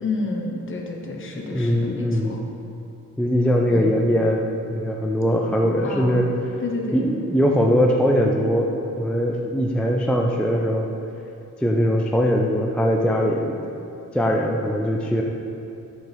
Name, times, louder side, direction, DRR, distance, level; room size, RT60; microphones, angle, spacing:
voice 1, 0.0-2.4 3.7-3.9 5.8-6.3 6.6-7.1, left 3 dB, 40° left, 1 dB, 1.0 m, -30 dB
voice 2, 1.5-2.4 3.2-6.3 6.9-8.7 9.0-10.9 11.6-13.6 14.1-15.2, equal, 5° left, 0 dB, 0.3 m, -21 dB
9.2 x 5.1 x 4.5 m, 2.9 s
wide cardioid pair, 160°, 32 cm